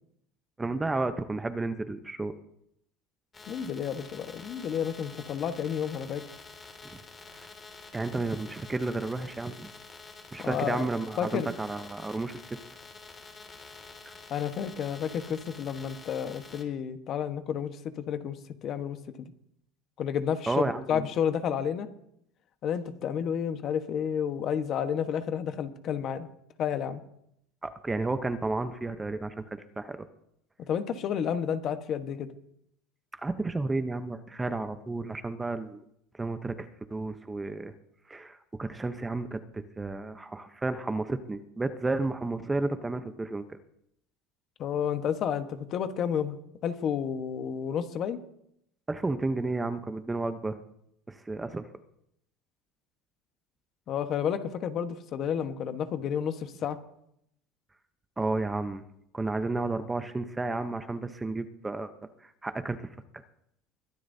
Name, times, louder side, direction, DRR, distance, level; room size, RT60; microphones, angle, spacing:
voice 1, 0.6-2.3 6.8-7.0 7.3-7.5 7.9-9.7 10.3-12.6 14.1-14.2 20.5-21.0 27.6-30.1 33.2-35.8 36.2-37.7 38.1-43.6 48.9-50.6 51.1-51.7 58.2-58.8 59.1-61.9 62.2-62.9, right 2 dB, 10° right, 9 dB, 0.8 m, -32 dB
sound 1, 3.3-16.6, left 4 dB, 20° left, 2.4 m, -48 dB
voice 2, 3.5-6.2 10.4-10.9 11.2-11.5 14.3-19.3 20.0-21.9 22.6-26.3 26.6-27.0 30.7-32.3 44.6-46.4 46.6-48.2 53.9-56.8, left 8 dB, 45° left, 9 dB, 1.3 m, -31 dB
22.5 x 11.5 x 2.8 m, 0.75 s
supercardioid pair, 120°, 0 cm